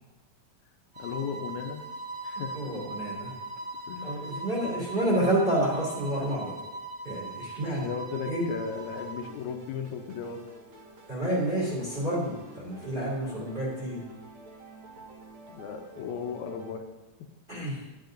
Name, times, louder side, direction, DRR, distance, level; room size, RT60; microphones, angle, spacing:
sound 1, 0.9-9.3, right 2 dB, 80° right, 3.9 m, -40 dB
voice 1, 1.0-1.8 2.2-2.7 3.9-4.2 4.6-4.7 5.3-5.4 7.7-10.4 12.3-12.4 15.5-16.8, left 6 dB, 80° left, 5 dB, 2.1 m, -36 dB
voice 2, 2.5-3.4 4.0-6.6 7.0-7.9 8.3-8.5 11.1-14.1 17.5-17.8, right 1 dB, 20° right, -5 dB, 2.1 m, -29 dB
sound 2, 8.7-16.7, right 2 dB, 55° right, 1.7 m, -50 dB
10.5 x 9.8 x 2.5 m, 1.1 s
omnidirectional pair, 3.3 m